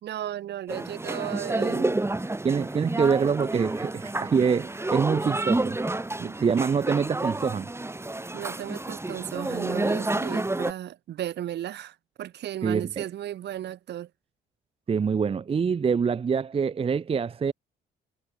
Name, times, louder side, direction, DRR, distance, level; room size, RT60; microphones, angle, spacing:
voice 1, 0.0-2.0 8.3-14.1, right 12 dB, 65° right, 2.5 m, -35 dB
sound 1, 0.7-10.7, right 2 dB, 15° right, 3.0 m, -30 dB
voice 2, 2.4-5.8 6.2-7.7 12.6-13.0 14.9-17.5, right 6 dB, 30° right, 0.6 m, -25 dB
supercardioid pair, 65°, 19 cm